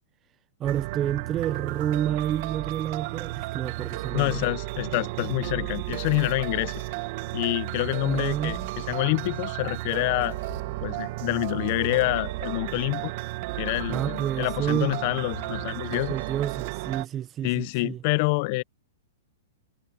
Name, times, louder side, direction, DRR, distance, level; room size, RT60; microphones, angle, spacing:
voice 1, 0.6-4.4 8.0-8.8 13.9-15.0 16.1-18.0, right 10 dB, 25° right, 0.4 m, -29 dB
sound 1, 0.6-17.1, right 20 dB, 45° right, 0.9 m, -33 dB
voice 2, 4.1-6.8 7.3-10.4 10.8-13.1 13.6-16.2 17.4-18.6, left 25 dB, 45° left, 0.4 m, -27 dB
sound 2, 5.7-17.3, left 10 dB, 80° left, 3.3 m, -51 dB
hypercardioid pair, 140°, 0 cm